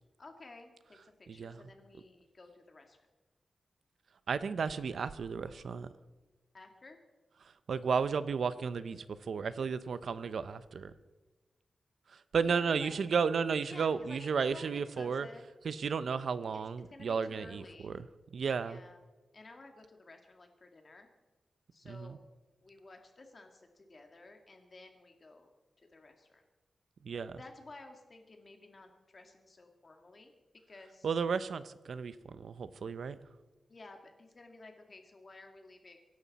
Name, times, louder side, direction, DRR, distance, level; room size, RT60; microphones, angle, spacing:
voice 1, 0.2-3.1 6.5-7.0 12.4-12.9 13.6-15.5 16.9-17.9 18.6-19.0 19.3-21.1 21.7-22.2 22.6-25.5 25.9-26.4 27.3-30.3 30.7-31.1 33.7-36.0, left 2 dB, 35° left, 4 dB, 2.0 m, -53 dB
voice 2, 4.3-5.9 7.7-10.9 12.3-15.3 15.6-18.0 18.3-18.8 21.9-22.2 27.0-27.4 31.0-33.2, right 6 dB, 70° right, 14 dB, 0.7 m, -33 dB
24.0 x 11.0 x 4.2 m, 1.2 s
wide cardioid pair, 155°, 0 cm